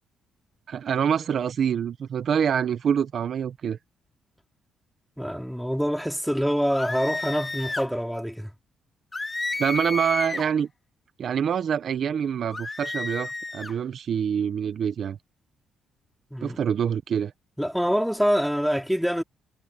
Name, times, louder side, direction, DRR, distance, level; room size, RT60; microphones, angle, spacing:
voice 1, 0.7-3.8 9.6-10.7 11.2-15.2 16.4-17.3, right 8 dB, 60° right, 1.1 m, -26 dB
voice 2, 5.2-8.5 16.3-16.6 17.6-19.2, equal, ahead, 4.5 m, -25 dB
sound 1, 6.7-7.9 9.1-10.5 12.5-13.7, left 3 dB, 20° left, 2.7 m, -31 dB
cardioid pair, 90°, 0 cm